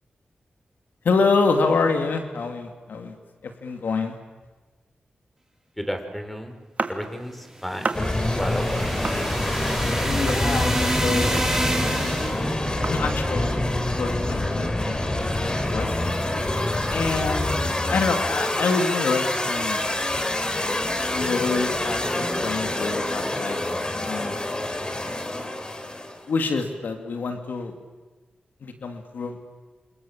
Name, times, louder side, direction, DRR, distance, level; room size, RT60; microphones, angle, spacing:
voice 1, 1.0-3.1 3.4-4.2 10.0-11.4 11.8-12.3 12.9-13.7 14.0-16.1 16.9-19.9 21.1-23.6 23.9-24.5 26.3-27.7 28.6-29.4, left 4 dB, 80° left, 5 dB, 2.7 m, -27 dB
voice 2, 5.8-6.6 6.9-7.9 8.3-9.1, equal, 5° left, 6 dB, 5.3 m, -32 dB
sound 1, 6.8-7.4 7.8-8.3 9.0-9.8 10.3-11.0 11.3-13.3, right 3 dB, 50° right, 2.6 m, -33 dB
sound 2, 7.6-12.6, right 1 dB, 10° right, 5.9 m, -28 dB
sound 3, 7.9-26.2, left 1 dB, 25° left, 3.7 m, -26 dB
28.0 x 27.5 x 7.6 m, 1.3 s
cardioid pair, 50°, 3 cm